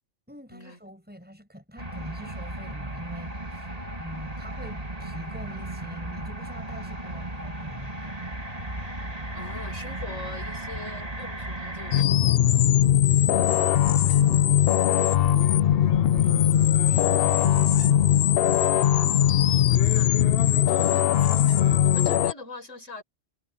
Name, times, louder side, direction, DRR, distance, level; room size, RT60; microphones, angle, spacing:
voice 1, 0.3-3.7 4.0-8.2 13.2-18.0, equal, 10° right, 7.1 m, -44 dB
sound 1, 1.8-12.0, right 1 dB, 30° right, 2.8 m, -35 dB
voice 2, 9.3-12.6 18.7-19.4 19.8-20.2 20.7-23.0, left 3 dB, 85° left, 5.9 m, -42 dB
sound 2, 11.9-22.3, left 11 dB, 60° left, 0.7 m, -20 dB
omnidirectional pair, 1.3 m